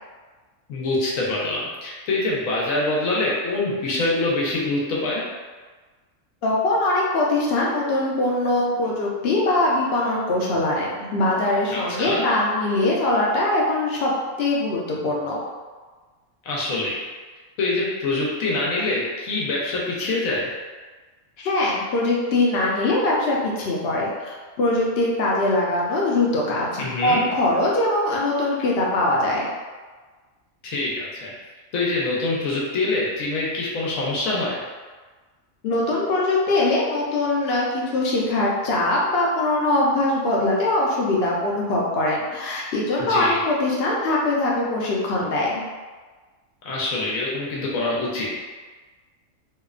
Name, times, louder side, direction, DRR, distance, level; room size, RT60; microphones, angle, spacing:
voice 1, 0.7-5.2 11.7-12.2 16.4-17.0 17.6-20.6 26.8-27.2 30.6-31.3 31.7-34.6 43.0-43.4 46.6-48.3, left 2 dB, 90° left, -5 dB, 1.1 m, -25 dB
voice 2, 6.4-14.1 14.4-15.4 21.4-29.5 35.6-45.6, left 2 dB, 60° left, -4 dB, 0.7 m, -22 dB
2.8 x 2.0 x 2.3 m, 1.4 s
omnidirectional pair, 1.4 m